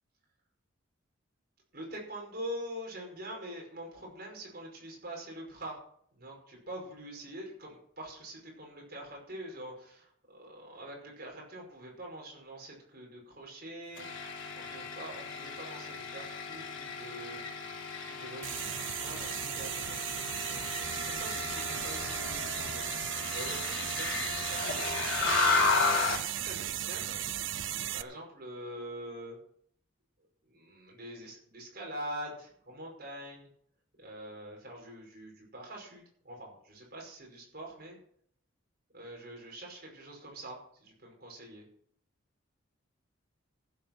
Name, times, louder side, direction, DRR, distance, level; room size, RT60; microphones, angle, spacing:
voice 1, 1.7-5.8 6.1-17.5 18.1-27.2 27.9-29.4 30.5-33.5 34.0-38.0 38.9-41.6, right 1 dB, 50° right, -1 dB, 5.5 m, -45 dB
sound 1, 14.0-26.3, left 4 dB, 65° left, 3.6 m, -34 dB
sound 2, 18.4-28.0, right 11 dB, 65° right, 0.5 m, -36 dB
15.0 x 8.1 x 6.1 m, 0.62 s
head